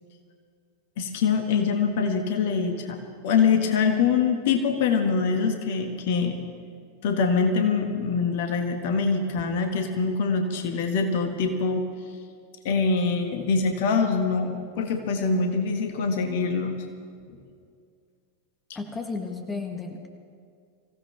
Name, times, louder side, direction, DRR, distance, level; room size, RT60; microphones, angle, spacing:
voice 1, 1.0-3.0 3.2-6.4 7.0-11.9 12.6-16.8 17.3-17.4, left 5 dB, 50° left, 5 dB, 1.5 m, -24 dB
voice 2, 18.7-20.1, left 4 dB, 15° left, 4 dB, 1.5 m, -33 dB
24.0 x 16.0 x 3.4 m, 2.2 s
figure-of-eight pair, 90°, 0 cm